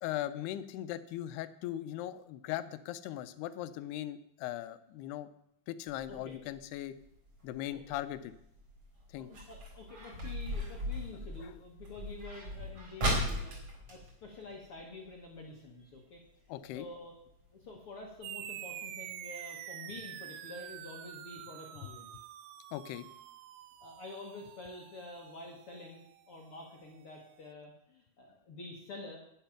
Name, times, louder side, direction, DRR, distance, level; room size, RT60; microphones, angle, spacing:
voice 1, 0.0-5.3 5.7-6.9 7.4-8.3 9.1-9.3 16.5-16.9 22.7-23.1, left 13 dB, 85° left, 13 dB, 2.6 m, -39 dB
sound 1, 5.9-15.1 15.4-15.5 15.8-16.2 16.7-16.8 17.3-17.4 17.7-17.8 18.2-18.3, equal, 40° right, 4.9 m, -38 dB
voice 2, 9.1-16.2 16.7-17.1 17.5-22.1 23.8-29.2, left 2 dB, 65° left, 0 dB, 1.4 m, -48 dB
sound 2, 18.2-27.1, right 12 dB, 80° right, 2.1 m, -47 dB
10.5 x 10.5 x 5.9 m, 0.76 s
omnidirectional pair, 4.6 m